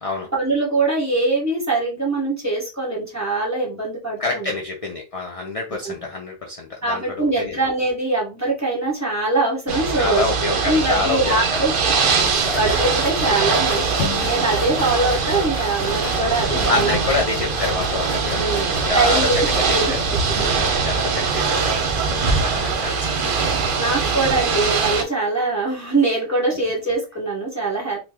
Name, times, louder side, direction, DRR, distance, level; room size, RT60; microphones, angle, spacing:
voice 1, 0.3-4.5 5.8-5.9 6.8-10.2 10.6-11.9 12.5-17.2 18.3-20.5 23.8-28.0, right 2 dB, 15° right, -4 dB, 1.1 m, -23 dB
voice 2, 4.2-7.6 9.9-11.6 12.0-12.5 14.9-15.2 16.7-18.5 18.8-23.9, left 3 dB, 40° left, 0 dB, 0.5 m, -27 dB
Ocean / Boat Water vehicle, 9.7-25.0, right 5 dB, 60° right, 0.7 m, -22 dB
sound 1, 12.4-20.2, left 5 dB, 70° left, 0.8 m, -32 dB
3.0 x 2.2 x 3.5 m, 0.29 s
omnidirectional pair, 1.1 m